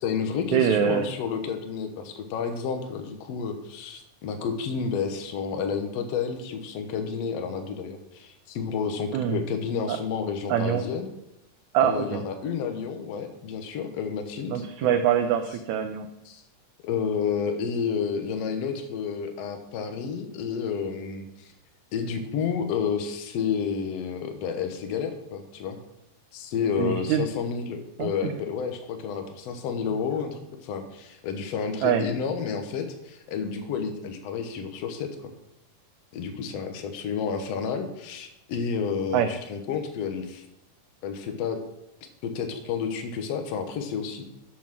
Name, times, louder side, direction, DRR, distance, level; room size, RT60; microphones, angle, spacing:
voice 1, 0.0-11.1 11.8-14.9 16.3-16.4 16.8-21.5 21.9-25.8 26.3-35.3 36.1-40.4 41.0-41.6 42.2-44.2, left 6 dB, 65° left, 5 dB, 1.8 m, -30 dB
voice 2, 0.5-1.1 9.1-9.4 9.9-10.0 10.5-10.8 11.7-12.2 14.5-16.1 26.8-27.2 28.0-28.1 31.8-32.1 39.1-39.3, right 9 dB, 80° right, 6 dB, 1.8 m, -24 dB
7.3 x 7.1 x 6.0 m, 0.88 s
omnidirectional pair, 3.8 m